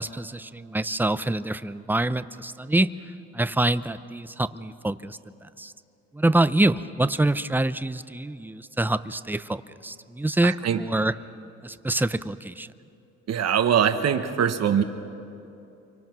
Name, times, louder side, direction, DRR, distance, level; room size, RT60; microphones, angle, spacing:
voice 1, 0.0-2.9 3.3-5.7 6.1-11.2 11.6-12.7, right 1 dB, 5° right, 14 dB, 0.6 m, -26 dB
voice 2, 10.4-10.8 13.3-14.8, right 8 dB, 60° right, 7 dB, 1.3 m, -22 dB
29.0 x 24.5 x 6.2 m, 2.8 s
cardioid pair, 90°, 30 cm